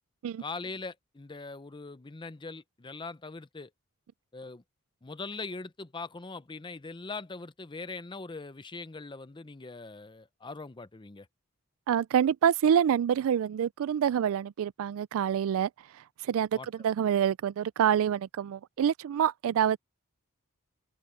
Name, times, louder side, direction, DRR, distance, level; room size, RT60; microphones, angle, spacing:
voice 1, 0.4-3.7 4.3-4.6 5.0-11.3 16.5-16.7, left 3 dB, 20° left, 0.6 m, -41 dB
voice 2, 11.9-15.7 16.2-19.8, right 9 dB, 65° right, 0.3 m, -26 dB
open air
head